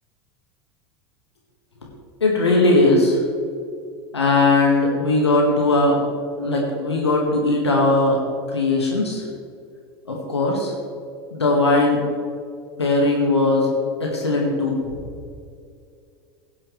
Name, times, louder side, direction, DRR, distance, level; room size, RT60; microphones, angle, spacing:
voice 1, 2.2-3.2 4.1-6.0 6.4-8.2 8.5-9.2 10.1-10.7 11.3-12.1 12.8-13.7 14.0-14.8, left 2 dB, 80° left, -1 dB, 1.9 m, -19 dB
16.5 x 9.5 x 3.4 m, 2.3 s
figure-of-eight pair, 85°, 14 cm